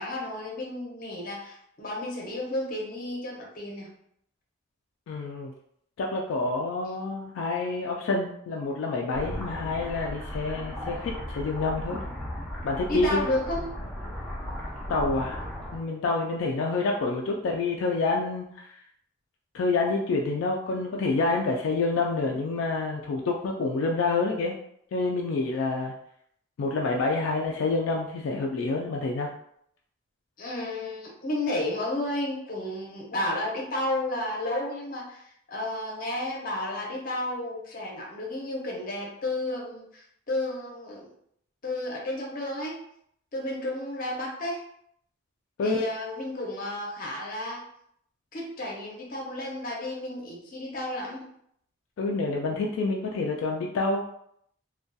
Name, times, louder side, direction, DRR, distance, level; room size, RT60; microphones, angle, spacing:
voice 1, 0.0-3.9 12.9-13.7 30.4-35.2 35.5-41.1 41.6-42.8 43.3-44.6 45.6-47.6 48.3-51.3, left 1 dB, 45° left, -2 dB, 0.6 m, -32 dB
voice 2, 5.1-5.5 6.0-12.0 12.6-13.2 14.9-15.5 15.7-18.7 19.5-24.6 24.9-25.9 26.6-29.3 45.6-45.8 52.0-54.2, left 3 dB, 80° left, 0 dB, 0.3 m, -28 dB
sound 1, 9.1-15.8, equal, 5° left, 0.5 m, -36 dB
2.6 x 2.2 x 2.2 m, 0.70 s
head